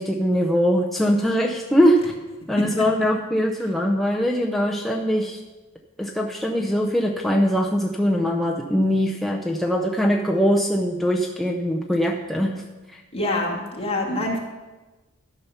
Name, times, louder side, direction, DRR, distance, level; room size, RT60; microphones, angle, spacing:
voice 1, 0.0-2.1 2.5-5.4 6.0-12.6 12.9-13.0, equal, ahead, -1 dB, 0.5 m, -22 dB
voice 2, 13.1-14.4, left 1 dB, 25° left, -2 dB, 1.9 m, -25 dB
12.0 x 5.7 x 5.7 m, 1.2 s
head